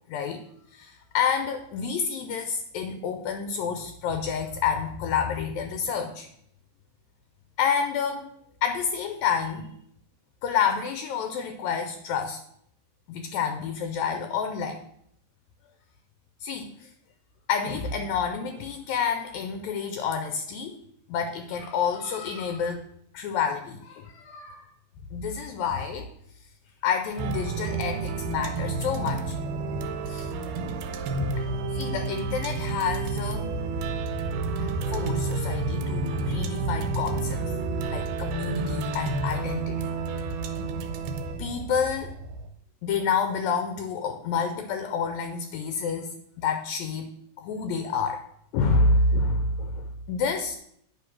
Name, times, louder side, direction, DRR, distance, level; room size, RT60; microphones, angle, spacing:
voice 1, 0.1-0.4 0.7-6.3 7.6-8.3 8.6-9.7 10.4-12.4 13.1-14.8 16.4-16.9 17.5-20.8 21.1-22.8 23.1-24.7 25.1-26.1 26.8-29.4 29.8-30.3 31.2-33.5 34.6-37.4 37.9-40.0 41.4-42.2 42.8-47.1 47.4-48.2 48.5-50.6, left 5 dB, 75° left, 7 dB, 1.8 m, -29 dB
sound 1, 27.2-42.5, right 3 dB, 80° right, 2.3 m, -30 dB
10.0 x 3.4 x 5.9 m, 0.70 s
omnidirectional pair, 3.7 m